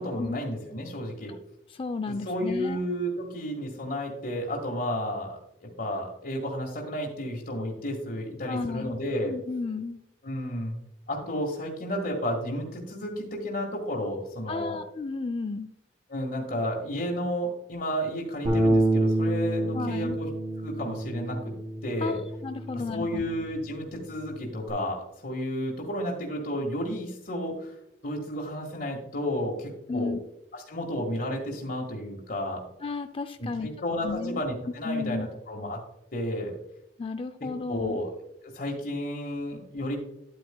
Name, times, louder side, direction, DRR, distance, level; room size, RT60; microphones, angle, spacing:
voice 1, 0.0-1.3 2.1-9.3 10.2-10.8 11.1-14.8 16.1-20.3 20.6-21.5 21.8-22.2 22.9-27.7 28.0-30.1 30.5-32.6 33.4-35.8 36.1-36.6 37.7-38.1 38.4-40.0, equal, 55° left, -2 dB, 1.7 m, -32 dB
voice 2, 1.7-2.8 8.5-9.0 9.2-10.0 14.5-15.7 19.7-20.2 22.0-23.2 29.9-30.2 32.8-33.7 34.0-34.4 34.8-35.3 37.0-38.0, left 4 dB, 30° left, 8 dB, 0.4 m, -33 dB
Bass guitar, 18.4-24.7, right 1 dB, 40° right, 2.6 m, -29 dB
10.5 x 8.6 x 2.3 m, 0.82 s
head